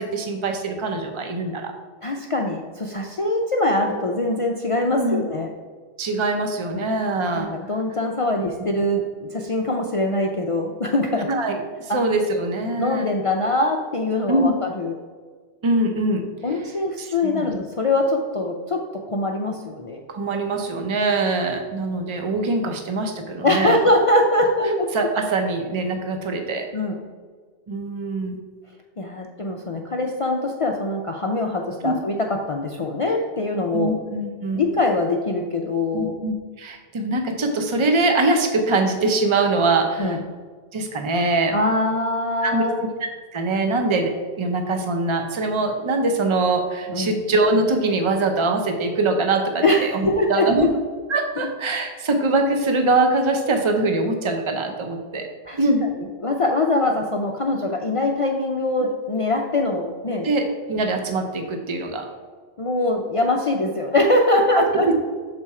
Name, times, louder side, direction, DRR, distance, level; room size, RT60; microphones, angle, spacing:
voice 1, 0.0-1.7 4.9-5.2 6.0-7.5 8.6-8.7 11.3-13.1 14.3-14.5 15.6-16.3 17.0-17.5 20.1-23.8 24.9-26.7 27.7-28.4 31.8-31.9 33.7-34.6 35.9-40.2 40.7-41.6 42.4-42.7 43.0-50.7 51.1-55.3 55.6-55.9 60.2-62.1 64.5-64.6, right 2 dB, 30° right, 5 dB, 0.6 m, -23 dB
voice 2, 2.0-5.5 6.7-6.9 7.3-11.3 11.9-12.0 12.8-14.9 16.4-20.0 23.4-24.9 26.7-27.0 29.0-33.9 34.5-36.1 40.0-40.2 41.5-42.8 46.9-47.2 49.6-50.7 55.5-55.6 56.2-60.3 62.6-64.9, left 2 dB, 55° left, 2 dB, 0.3 m, -23 dB
6.8 x 4.3 x 4.7 m, 1.5 s
omnidirectional pair, 1.1 m